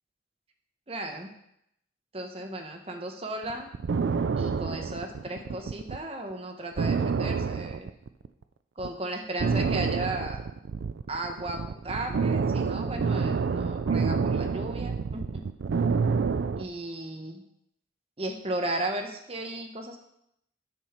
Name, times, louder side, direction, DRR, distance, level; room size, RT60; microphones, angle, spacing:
voice 1, 0.9-1.3 2.1-3.7 4.4-7.9 8.8-10.4 11.1-15.5 16.6-17.4 18.2-20.0, right 1 dB, 30° right, 4 dB, 0.9 m, -35 dB
sound 1, 3.5-6.0 6.3-6.4 6.8-8.4 8.8-9.0 9.4-16.7, right 5 dB, 75° right, 0.4 m, -28 dB
9.0 x 5.8 x 4.3 m, 0.77 s
head